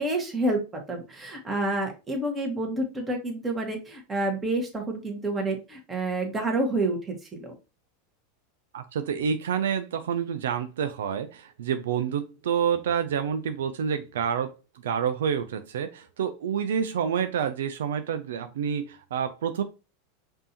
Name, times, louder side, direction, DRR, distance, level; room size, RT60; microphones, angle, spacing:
voice 1, 0.0-7.5, right 2 dB, 20° right, 1.5 m, -29 dB
voice 2, 8.7-14.5 14.8-19.6, right 7 dB, 80° right, 0.4 m, -28 dB
5.2 x 2.8 x 2.8 m
hypercardioid pair, 105°, 0 cm